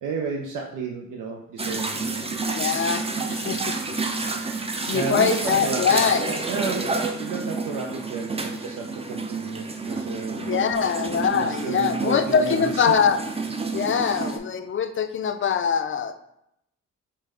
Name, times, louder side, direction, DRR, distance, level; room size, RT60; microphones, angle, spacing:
voice 1, 0.0-2.2 4.9-6.0 6.5-10.5 11.3-13.0, right 4 dB, 80° right, 1 dB, 0.5 m, -32 dB
sound 1, 1.6-14.4, right 3 dB, 20° right, 0.5 m, -29 dB
voice 2, 2.5-4.0 4.9-6.4 10.4-13.2 13.7-16.1, left 6 dB, 40° left, 8 dB, 0.5 m, -23 dB
5.0 x 2.1 x 3.3 m, 0.79 s
supercardioid pair, 50°, 31 cm